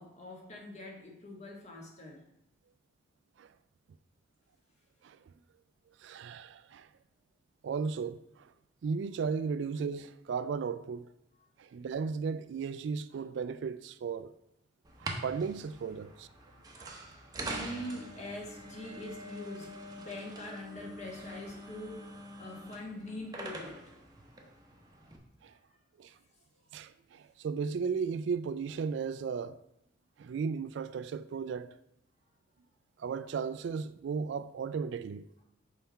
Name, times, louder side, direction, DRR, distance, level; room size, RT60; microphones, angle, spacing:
voice 1, 0.0-2.2 11.4-11.5 17.0-23.9 25.5-25.6 26.5-26.6, left 1 dB, 35° left, 1.4 m, -44 dB
voice 2, 5.0-5.3 6.0-6.9 7.6-8.5 8.8-11.1 11.6-14.3 15.0-16.3 16.8-17.0 25.4-25.5 26.0-26.1 26.7-29.6 30.2-31.7 33.0-35.3, right 5 dB, 65° right, 0.3 m, -35 dB
sound 1, 14.8-25.2, right 1 dB, 20° right, 0.8 m, -44 dB
5.6 x 4.2 x 5.5 m
head